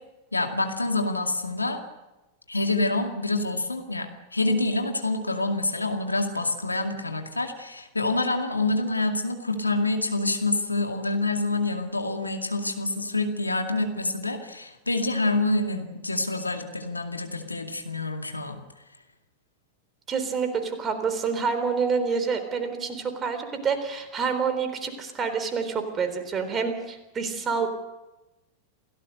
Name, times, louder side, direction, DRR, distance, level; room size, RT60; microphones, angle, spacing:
voice 1, 0.3-1.8 2.5-18.6, left 2 dB, 80° left, 4 dB, 2.3 m, -27 dB
voice 2, 20.1-27.7, right 5 dB, 25° right, 8 dB, 3.9 m, -27 dB
28.0 x 17.5 x 6.6 m, 1.0 s
figure-of-eight pair, 90°, 0 cm